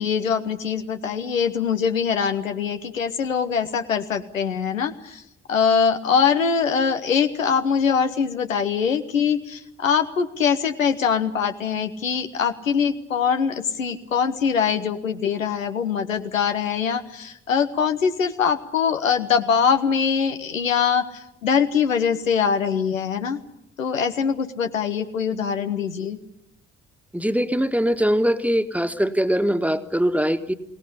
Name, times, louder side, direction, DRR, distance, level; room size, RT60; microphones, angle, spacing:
voice 1, 0.0-5.2 5.5-23.4 23.8-26.2, left 6 dB, 85° left, 7 dB, 1.0 m, -23 dB
voice 2, 27.1-30.5, equal, 5° right, 9 dB, 1.7 m, -22 dB
22.0 x 18.0 x 9.9 m, 0.79 s
figure-of-eight pair, 40°, 39 cm